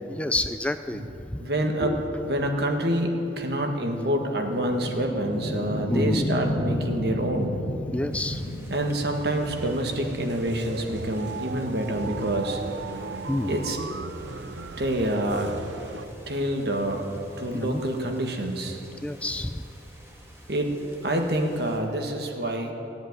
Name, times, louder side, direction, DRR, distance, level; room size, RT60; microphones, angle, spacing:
voice 1, 0.1-1.1 1.3-1.4 5.9-6.3 7.9-8.4 13.3-13.5 17.5-17.8 19.0-19.6, left 1 dB, 5° left, 9 dB, 0.3 m, -28 dB
voice 2, 1.4-7.5 8.7-12.6 13.4-13.8 14.8-15.5 16.3-17.1 17.4-18.8 20.5-20.7 21.0-22.7, right 1 dB, 60° right, 3 dB, 1.7 m, -27 dB
sound 1, 3.5-13.3, left 1 dB, 55° left, 1.7 m, -33 dB
sound 2, 8.1-21.8, right 1 dB, 15° right, 1.8 m, -49 dB
sound 3, 9.4-16.1, right 4 dB, 85° right, 0.7 m, -38 dB
16.5 x 7.8 x 9.5 m, 2.9 s
head